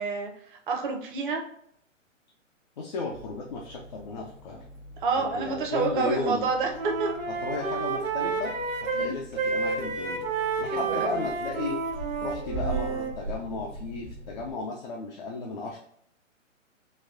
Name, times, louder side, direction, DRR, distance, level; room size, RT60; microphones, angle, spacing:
voice 1, 0.0-1.4 5.0-7.1 8.9-9.2 10.7-11.2, right 4 dB, 40° right, 2 dB, 0.8 m, -29 dB
voice 2, 2.8-4.6 5.2-6.5 7.4-8.5 8.9-10.2 10.6-11.8 12.2-15.8, left 3 dB, 35° left, -1 dB, 0.5 m, -34 dB
sound 1, 3.1-14.5, right 2 dB, 15° right, 0.5 m, -41 dB
Wind instrument woodwind instrument, 5.9-6.3 6.6-13.2, right 4 dB, 85° right, 0.8 m, -30 dB
4.0 x 2.3 x 2.6 m, 0.68 s
figure-of-eight pair, 130°, 39 cm